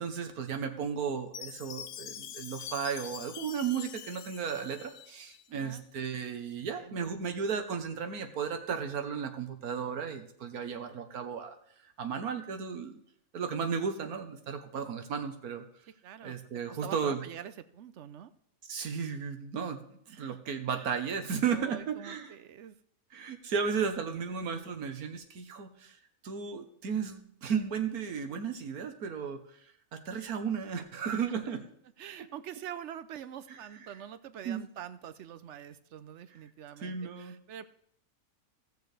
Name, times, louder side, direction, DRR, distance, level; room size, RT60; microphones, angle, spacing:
voice 1, 0.0-11.6 12.0-13.0 13.3-15.6 16.2-17.2 18.7-19.8 20.2-22.3 23.1-26.0 26.2-29.6 29.9-31.6 33.5-33.6 34.4-34.7 36.8-37.4, right 6 dB, 90° right, 7 dB, 1.6 m, -34 dB
Chime, 1.3-5.5, left 10 dB, 70° left, 1.0 m, -44 dB
voice 2, 5.5-5.8 6.8-7.1 16.0-16.4 16.7-18.3 20.1-20.4 20.7-21.0 21.4-22.8 32.0-37.7, right 10 dB, 60° right, 13 dB, 0.9 m, -45 dB
16.5 x 6.8 x 3.3 m, 0.69 s
omnidirectional pair, 1.5 m